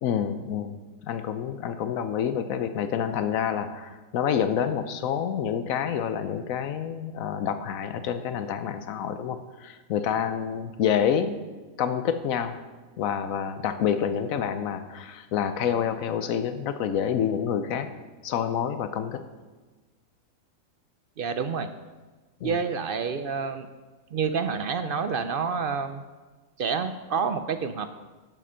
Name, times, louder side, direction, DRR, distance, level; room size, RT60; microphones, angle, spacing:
voice 1, 0.0-11.4 11.8-12.6 13.0-17.9 18.2-19.2 22.4-22.6, left 8 dB, 85° left, 10 dB, 1.1 m, -28 dB
voice 2, 21.2-21.7 22.4-23.7 24.1-26.0 26.6-27.9, right 5 dB, 60° right, 10 dB, 0.6 m, -28 dB
11.0 x 7.6 x 5.6 m, 1.3 s
omnidirectional pair, 1.4 m